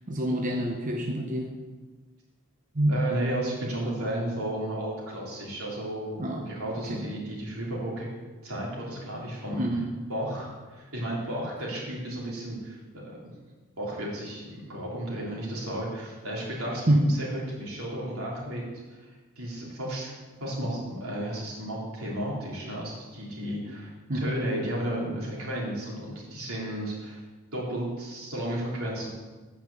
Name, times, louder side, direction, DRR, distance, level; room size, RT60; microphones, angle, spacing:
voice 1, 0.1-1.5 2.7-3.0 6.2-6.4 6.9-7.0 9.5-9.9 16.9-17.0 24.1-24.2, right 1 dB, 35° right, 0 dB, 0.9 m, -26 dB
voice 2, 2.9-8.1 8.4-9.6 10.1-13.3 13.8-18.6 18.9-19.0 19.4-20.1 20.4-27.2 27.5-29.1, right 1 dB, 85° right, -4 dB, 3.4 m, -33 dB
9.4 x 5.7 x 7.1 m, 1.3 s
head